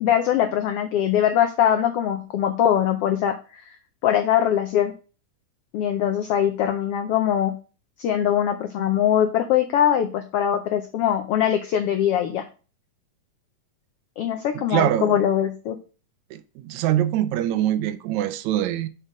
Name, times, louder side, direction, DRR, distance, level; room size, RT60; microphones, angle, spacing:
voice 1, 0.0-3.4 4.0-4.9 5.7-7.5 8.0-12.4 14.2-15.8, left 10 dB, 85° left, 1.3 m, -22 dB
voice 2, 14.6-15.2 16.3-18.9, right 12 dB, 80° right, 1.8 m, -24 dB
6.7 x 4.6 x 4.9 m
omnidirectional pair, 3.4 m